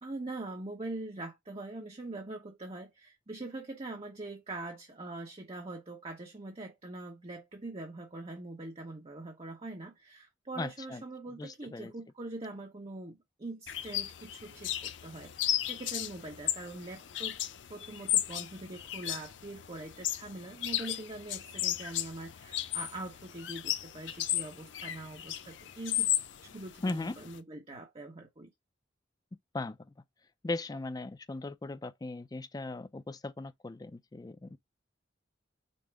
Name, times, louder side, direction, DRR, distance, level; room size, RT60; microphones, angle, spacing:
voice 1, 0.0-17.4 17.7-26.1 26.4-28.5, right 2 dB, 30° right, 0.9 m, -43 dB
voice 2, 10.6-11.0 11.4-11.9 26.8-27.2 29.5-29.9 30.4-34.6, left 2 dB, 20° left, 0.4 m, -38 dB
sound 1, 13.7-27.4, left 12 dB, 85° left, 0.6 m, -35 dB
5.4 x 2.1 x 4.5 m
head